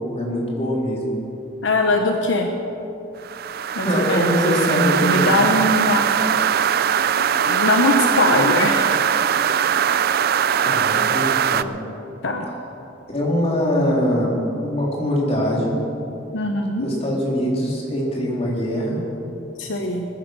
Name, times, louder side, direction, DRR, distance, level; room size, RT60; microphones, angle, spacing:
voice 1, 0.1-1.2 3.8-5.4 10.6-11.8 13.1-15.8 16.8-19.0, equal, 30° left, -4 dB, 3.7 m, -23 dB
voice 2, 1.6-2.5 3.7-6.1 7.2-8.9 12.2-12.5 16.3-16.9 19.6-20.0, left 2 dB, 75° left, 4 dB, 1.0 m, -21 dB
sound 1, 3.2-11.6, right 8 dB, 50° right, 0.4 m, -20 dB
20.5 x 10.0 x 6.5 m, 2.8 s
head